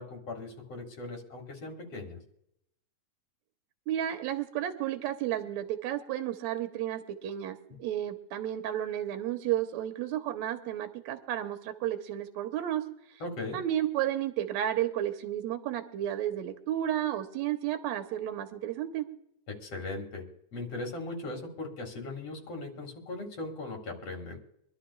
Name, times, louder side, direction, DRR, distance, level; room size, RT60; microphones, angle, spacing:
voice 1, 0.0-2.2 13.2-13.6 19.5-20.2 20.5-24.4, left 2 dB, 55° left, 2 dB, 2.9 m, -39 dB
voice 2, 3.9-12.8 13.5-19.1, right 12 dB, 75° right, 6 dB, 2.1 m, -32 dB
25.0 x 12.5 x 2.3 m, 0.78 s
omnidirectional pair, 3.3 m